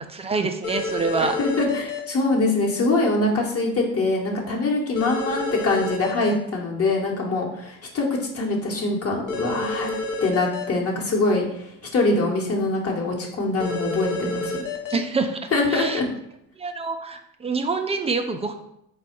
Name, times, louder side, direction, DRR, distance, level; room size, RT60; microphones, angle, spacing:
voice 1, 0.0-1.4 14.9-16.0 16.6-18.5, right 4 dB, 15° right, 6 dB, 0.4 m, -26 dB
sound 1, 0.6-2.0 5.0-6.3 9.3-10.6 13.6-15.0, left 2 dB, 55° left, 0.9 m, -29 dB
voice 2, 1.2-9.9 10.2-14.6 15.5-16.1, left 2 dB, 35° left, -1 dB, 1.2 m, -24 dB
4.1 x 2.3 x 4.4 m, 0.78 s
hypercardioid pair, 70°, 39 cm